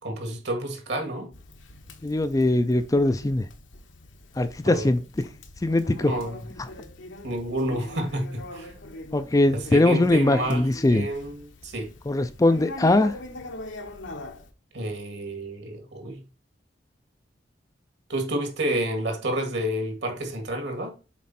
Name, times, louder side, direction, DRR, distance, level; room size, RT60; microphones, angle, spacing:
voice 1, 0.0-1.3 4.7-4.9 6.0-6.4 7.2-8.7 9.5-11.9 14.7-16.2 18.1-20.9, right 1 dB, 65° right, 2.0 m, -30 dB
Conversation, 1.3-14.5, left 1 dB, 80° left, 1.2 m, -42 dB
voice 2, 2.0-3.5 4.4-5.3 5.6-6.1 9.1-11.1 12.1-13.2, left 2 dB, 20° left, 0.4 m, -21 dB
7.4 x 4.2 x 4.2 m
head